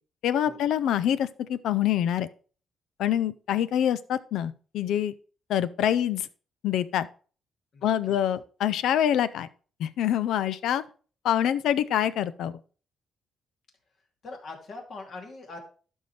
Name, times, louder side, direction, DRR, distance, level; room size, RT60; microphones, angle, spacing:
voice 1, 0.2-2.3 3.0-5.1 5.5-6.3 6.6-7.1 7.8-9.5 9.8-10.8 11.2-12.6, left 10 dB, 80° left, 15 dB, 0.5 m, -25 dB
voice 2, 7.7-8.2 14.2-15.6, left 3 dB, 55° left, 1 dB, 2.7 m, -42 dB
12.0 x 5.5 x 3.2 m, 0.39 s
cardioid pair, 90°, 0 cm